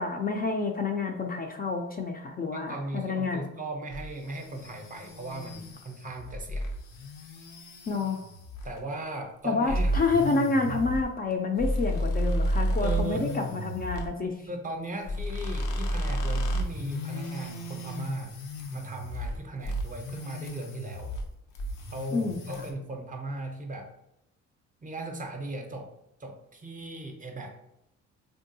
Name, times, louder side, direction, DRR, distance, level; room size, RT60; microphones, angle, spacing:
voice 1, 0.0-3.5 7.9-8.2 9.4-14.4 22.1-22.4, left 3 dB, 30° left, 3 dB, 0.4 m, -28 dB
voice 2, 2.5-6.7 8.6-9.9 10.7-10.9 12.8-13.3 14.5-18.3 18.7-21.1 21.9-23.9 24.8-25.9 26.2-27.6, right 2 dB, 25° right, 3 dB, 0.6 m, -37 dB
sound 1, 3.9-8.8 9.6-14.1 15.0-19.4 19.6-21.3 21.5-22.7, equal, 80° left, 0.6 m, -32 dB
3.5 x 2.3 x 2.6 m, 0.85 s
cardioid pair, 90°, 30 cm